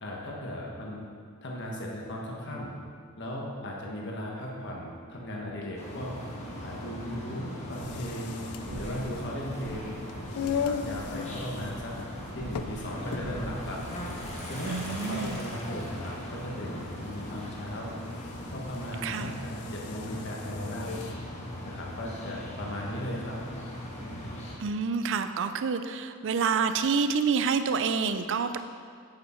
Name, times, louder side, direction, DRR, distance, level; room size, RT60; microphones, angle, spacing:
voice 1, 0.0-1.0 1.4-2.7 3.2-6.1 6.6-8.4 8.8-9.9 10.4-11.9 12.3-13.8 14.5-17.9 18.5-21.1 21.6-23.5 24.0-24.4, equal, 55° left, -2 dB, 1.4 m, -37 dB
sound 1, 5.8-24.6, left 1 dB, 30° left, 1.3 m, -39 dB
sound 2, 7.6-21.2, left 7 dB, 85° left, 0.4 m, -40 dB
sound 3, 7.8-23.2, right 1 dB, 90° right, 1.0 m, -46 dB
voice 2, 14.6-15.4 19.0-19.3 24.6-28.6, right 5 dB, 55° right, 10 dB, 0.5 m, -28 dB
8.1 x 7.8 x 4.5 m, 2.1 s
head